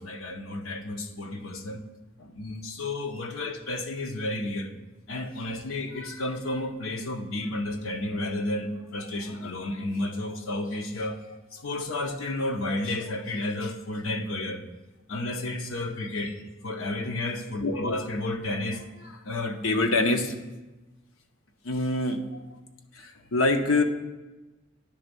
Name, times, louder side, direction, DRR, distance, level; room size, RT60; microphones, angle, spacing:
voice 1, 0.0-1.8 2.2-4.7 5.1-14.6 15.1-20.3 21.6-22.4 22.9-23.8, left 2 dB, 80° left, 5 dB, 0.8 m, -30 dB
9.9 x 3.5 x 6.7 m, 1.1 s
head